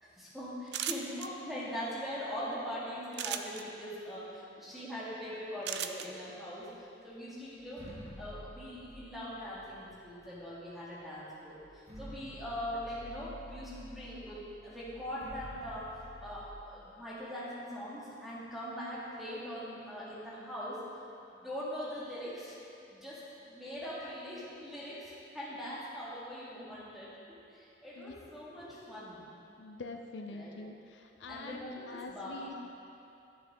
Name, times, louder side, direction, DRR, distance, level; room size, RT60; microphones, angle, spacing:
voice 1, 0.0-7.9 8.2-20.8 21.3-22.6 22.9-29.2 30.3-30.6 31.2-32.5, equal, ahead, -8 dB, 2.0 m, -42 dB
sound 1, 0.7-1.3 3.1-3.6 5.6-6.1, right 10 dB, 65° right, 0.4 m, -35 dB
sound 2, 7.6-10.4 11.2-11.3 11.6-16.5, left 1 dB, 35° right, 1.6 m, -50 dB
voice 2, 29.6-32.5, left 3 dB, 75° left, 4 dB, 0.5 m, -45 dB
12.5 x 7.0 x 3.7 m, 2.7 s
head